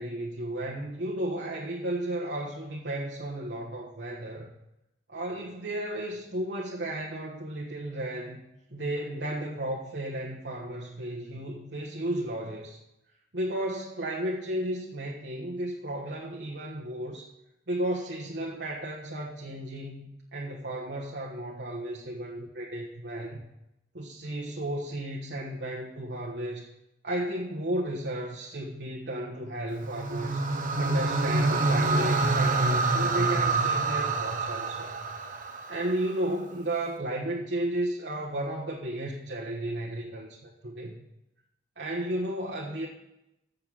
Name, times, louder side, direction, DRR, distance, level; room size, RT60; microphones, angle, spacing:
voice 1, 0.0-4.6 5.1-8.4 8.7-12.8 13.3-17.3 17.7-23.5 23.9-26.7 27.0-30.4 30.8-34.9 35.7-41.0 41.8-42.9, right 1 dB, 75° right, -3 dB, 1.3 m, -33 dB
sound 1, 29.8-36.1, right 3 dB, 50° right, 1.0 m, -26 dB
8.3 x 6.7 x 7.4 m, 0.88 s
head